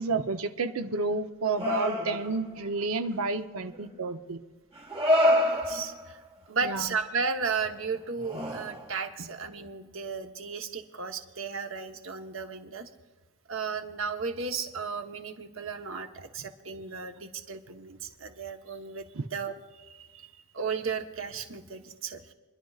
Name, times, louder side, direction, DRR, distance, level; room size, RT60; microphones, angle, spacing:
voice 1, 0.0-4.4 6.6-7.0 9.2-9.3 19.1-19.2, right 3 dB, 80° right, 8 dB, 0.8 m, -30 dB
sound 1, 1.6-2.5 3.7-3.8 4.8-6.1 7.7-7.8 8.2-8.9, left 1 dB, 30° right, 1.2 m, -27 dB
voice 2, 5.5-6.2 6.5-12.9 13.5-22.3, right 5 dB, 65° right, 4 dB, 1.1 m, -35 dB
26.0 x 11.5 x 2.4 m, 1.3 s
head